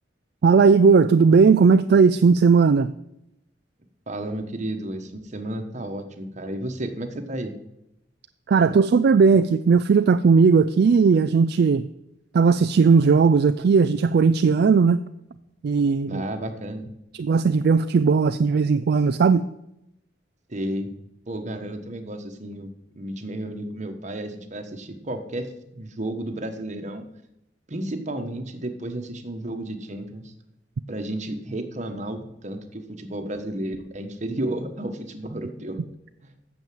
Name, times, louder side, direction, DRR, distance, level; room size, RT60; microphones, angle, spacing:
voice 1, 0.4-2.9 8.5-11.8 12.3-15.0 15.6-16.2 17.2-19.4, right 5 dB, 60° right, 11 dB, 0.4 m, -17 dB
voice 2, 4.1-7.5 16.0-16.9 20.5-20.9 21.3-22.7 22.9-25.5 25.7-27.1 27.7-30.3 30.9-35.8 36.2-36.3, right 1 dB, 40° right, 6 dB, 1.3 m, -32 dB
9.0 x 7.1 x 7.7 m, 0.83 s
head